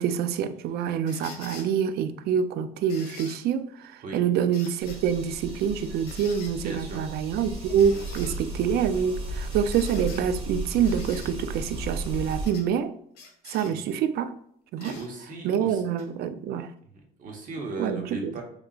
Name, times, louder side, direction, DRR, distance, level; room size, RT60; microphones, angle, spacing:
voice 1, 0.0-12.9 13.5-14.4 14.7-15.0 15.4-16.7 17.8-18.3, right 8 dB, 70° right, 0.4 m, -26 dB
sound 1, 1.1-1.7 2.9-3.4 4.5-5.0 6.1-6.5 7.8-8.4 9.5-10.2 10.8-11.3 12.5-12.7 13.1-13.7 14.8-15.1 16.0-16.1, left 4 dB, 70° left, 1.3 m, -45 dB
sound 2, 4.8-12.5, right 2 dB, 35° right, 1.3 m, -35 dB
voice 2, 6.6-7.2 7.9-8.1 13.6-13.8 14.8-15.8 16.9-18.4, right 2 dB, 50° right, 1.1 m, -38 dB
3.9 x 3.5 x 2.4 m
cardioid pair, 110°, 17 cm